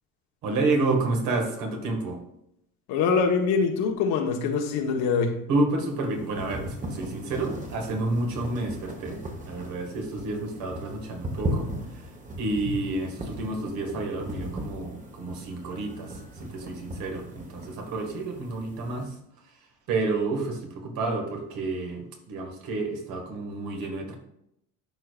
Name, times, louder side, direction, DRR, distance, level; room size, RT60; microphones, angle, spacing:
voice 1, 0.4-2.2 5.5-9.2 9.5-11.7 12.4-16.1 16.4-19.1 19.9-22.0 22.3-24.2, right 2 dB, 65° right, 1.9 m, -29 dB
voice 2, 2.9-5.4, left 5 dB, 80° left, 1.3 m, -24 dB
sound 1, 5.8-19.0, right 1 dB, 20° right, 1.3 m, -37 dB
11.5 x 4.7 x 2.5 m
cardioid pair, 120°, 37 cm